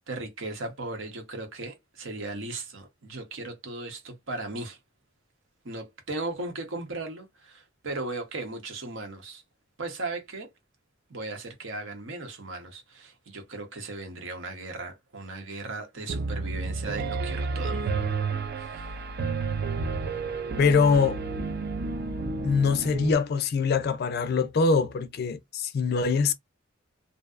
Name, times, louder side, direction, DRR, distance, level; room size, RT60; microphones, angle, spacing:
voice 1, 0.1-4.8 5.6-9.4 9.8-10.5 11.1-17.9 18.6-18.9, right 2 dB, 75° right, 0.8 m, -37 dB
Piano, 16.1-23.1, right 4 dB, 50° right, 0.4 m, -31 dB
voice 2, 20.6-21.2 22.4-26.3, left 5 dB, 50° left, 0.3 m, -23 dB
2.6 x 2.1 x 2.4 m
head